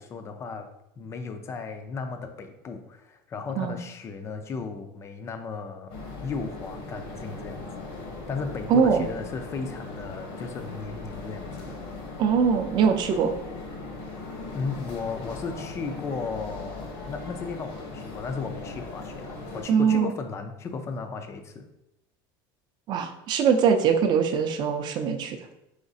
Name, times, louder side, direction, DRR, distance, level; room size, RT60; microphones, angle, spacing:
voice 1, 0.0-7.9 8.3-11.8 14.5-21.7, left 4 dB, 25° left, 7 dB, 0.4 m, -35 dB
sound 1, 5.9-19.6, left 3 dB, 60° left, 0.9 m, -39 dB
voice 2, 8.7-9.1 12.2-13.3 19.7-20.1 22.9-25.4, right 6 dB, 40° right, 7 dB, 0.4 m, -22 dB
4.9 x 3.1 x 2.7 m, 0.88 s
supercardioid pair, 145°, 12 cm